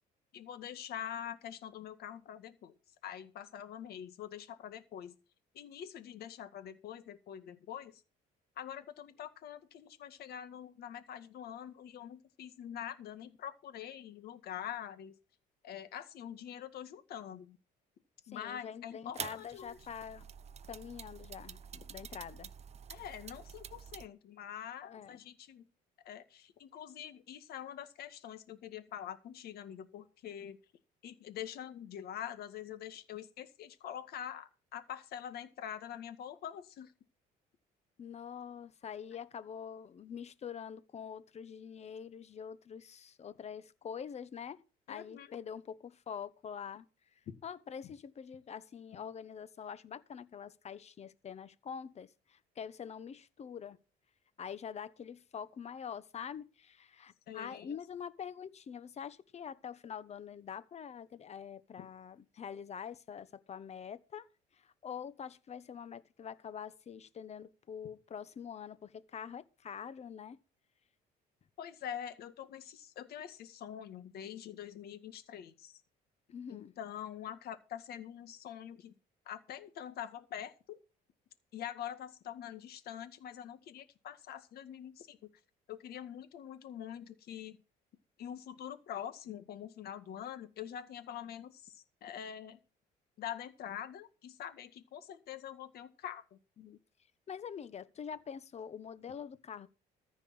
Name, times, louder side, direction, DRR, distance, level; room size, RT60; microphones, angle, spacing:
voice 1, 0.3-2.7 3.0-5.1 5.5-8.0 8.6-15.1 15.6-17.6 18.3-19.8 22.9-25.7 26.1-30.6 31.0-36.9 44.9-45.4 47.3-47.4 47.8-47.9 57.3-57.8 71.6-75.8 76.5-78.9 79.3-80.5 81.5-85.2 85.7-87.6 88.2-92.6 93.2-96.4, left 10 dB, 65° left, 1.9 m, -45 dB
voice 2, 18.3-20.2 20.7-22.5 24.8-25.2 38.0-44.6 44.9-46.8 47.4-53.8 54.4-64.3 64.8-70.4 76.3-76.7 96.6-96.8 97.3-99.7, left 7 dB, 40° left, 1.1 m, -45 dB
sound 1, 19.1-24.1, right 8 dB, 40° right, 0.8 m, -48 dB
14.5 x 5.3 x 7.9 m
cardioid pair, 110°, 17 cm